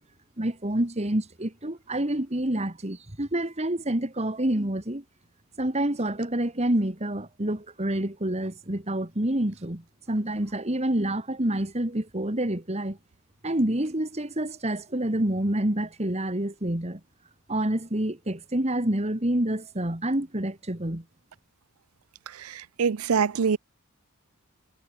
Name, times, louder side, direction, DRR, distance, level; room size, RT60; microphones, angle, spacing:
voice 1, 0.4-5.0 5.6-13.0 13.4-17.0 17.5-21.0, right 1 dB, 30° right, 2.3 m, -28 dB
voice 2, 22.8-23.6, right 6 dB, 85° right, 0.6 m, -23 dB
head